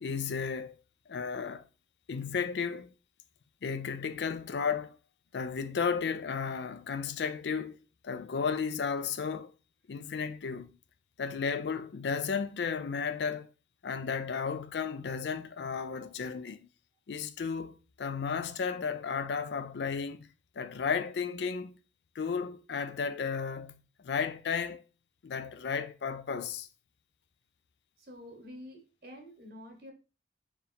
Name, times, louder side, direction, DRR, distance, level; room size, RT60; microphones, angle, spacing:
voice 1, 0.0-0.7 1.1-1.7 2.1-2.9 3.6-5.0 5.3-7.8 8.0-9.5 9.9-10.8 11.2-13.5 13.8-16.7 17.1-20.3 20.6-21.8 22.2-24.8 25.2-26.7, left 6 dB, 80° left, 0.4 m, -34 dB
voice 2, 28.0-29.9, left 1 dB, 55° right, 1.2 m, -48 dB
4.5 x 3.0 x 3.4 m
head